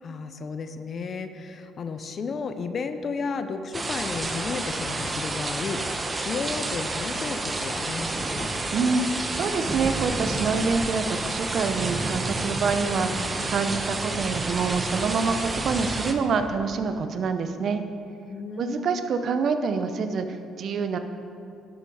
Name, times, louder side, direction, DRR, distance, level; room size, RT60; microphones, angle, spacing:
voice 1, 0.0-8.5 18.3-19.0, left 4 dB, 50° left, 9 dB, 0.6 m, -33 dB
sound 1, 3.7-16.1, right 2 dB, 25° right, 0.9 m, -29 dB
voice 2, 8.7-17.8 18.6-21.0, right 5 dB, 60° right, 8 dB, 0.7 m, -26 dB
11.5 x 7.0 x 4.9 m, 2.6 s
cardioid pair, 80°, 0 cm